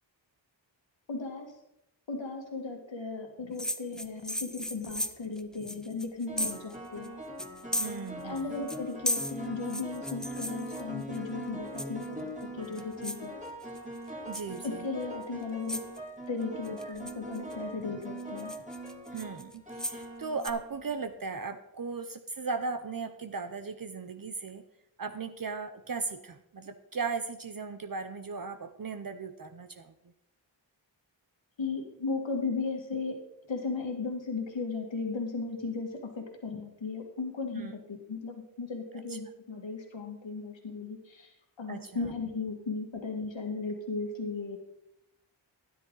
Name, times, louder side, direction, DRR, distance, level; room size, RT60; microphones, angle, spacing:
voice 1, 1.1-1.5 2.1-7.3 8.2-13.4 14.6-15.8 16.3-18.5 31.6-33.2 33.5-41.3 41.6-44.6, left 4 dB, 70° left, 3 dB, 2.0 m, -36 dB
sound 1, 3.6-6.8 7.0-7.1 7.4-8.4 8.7-11.2 11.8-12.2 12.6-13.3 13.6-14.0 14.3-14.6 15.2-15.3 15.7-16.0 16.6-17.5 18.0-20.1 20.4-20.5, equal, ahead, 0.6 m, -35 dB
sound 2, 4.7-5.0 6.3-21.1, right 1 dB, 15° right, 2.8 m, -42 dB
voice 2, 7.8-8.6 14.3-14.9 16.8-17.0 19.1-24.6 25.0-29.9 37.5-37.7 39.1-39.2 41.7-42.1, right 4 dB, 45° right, 9 dB, 0.7 m, -37 dB
12.5 x 10.0 x 3.9 m, 0.84 s
wide cardioid pair, 80°, 46 cm